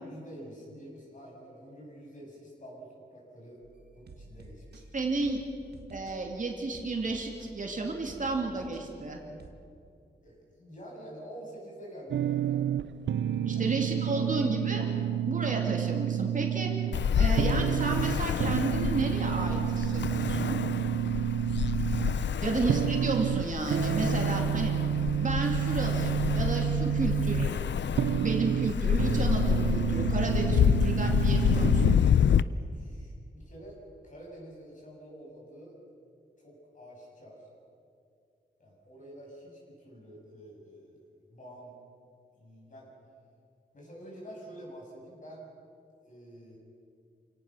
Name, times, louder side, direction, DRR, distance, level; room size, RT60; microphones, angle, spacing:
voice 1, 0.0-3.6 3.9-4.9 10.2-12.7 13.5-13.7 14.1-14.3 22.3-22.6 32.5-35.8 36.4-37.5 38.6-41.8 42.4-42.9 43.7-45.5 46.0-46.6, equal, 45° left, -2 dB, 7.6 m, -48 dB
sound 1, 3.6-9.5, right 2 dB, 65° right, 1.9 m, -51 dB
voice 2, 4.9-5.4 5.9-9.2 13.5-14.9 15.3-16.7 17.2-20.6 22.4-24.7 25.2-27.5 28.1-32.0, right 3 dB, 45° right, 1 dB, 2.6 m, -32 dB
sound 2, 12.1-32.0, right 10 dB, 85° right, 0.5 m, -30 dB
Ocean, 16.9-32.4, left 8 dB, 80° left, 0.5 m, -28 dB
28.0 x 18.0 x 6.4 m, 2.4 s
wide cardioid pair, 135°, 18 cm